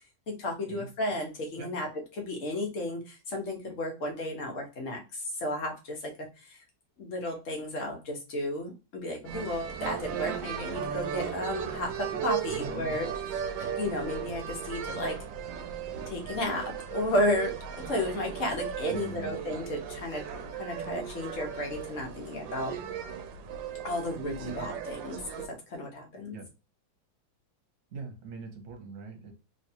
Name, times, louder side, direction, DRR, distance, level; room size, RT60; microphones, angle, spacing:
voice 1, 0.3-6.1 6.4-6.6 7.0-15.2 16.1-17.5 17.9-20.2 20.5-22.7 23.8-26.4, left 1 dB, 50° left, 1 dB, 1.3 m, -33 dB
sound 1, 9.2-25.5, right 8 dB, 80° right, 1.3 m, -36 dB
voice 2, 12.4-13.0 18.9-19.3 26.3-26.5 27.9-29.3, right 4 dB, 50° right, 3 dB, 1.2 m, -42 dB
3.3 x 3.1 x 2.7 m, 0.30 s
omnidirectional pair, 2.0 m